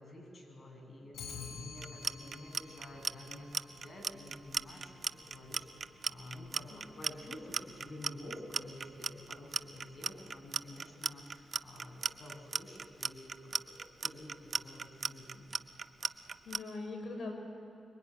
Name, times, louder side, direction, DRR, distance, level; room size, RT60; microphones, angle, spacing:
voice 1, 0.0-15.5, left 1 dB, 40° left, 2 dB, 7.8 m, -50 dB
Clock, 1.1-10.5, left 5 dB, 85° left, 6.5 m, -53 dB
Clock 2, 1.8-16.6, right 5 dB, 50° right, 0.8 m, -36 dB
voice 2, 6.7-7.0 16.1-17.3, left 3 dB, 60° left, 3 dB, 6.2 m, -43 dB
25.5 x 23.0 x 9.8 m, 2.7 s
cardioid pair, 65°, 0 cm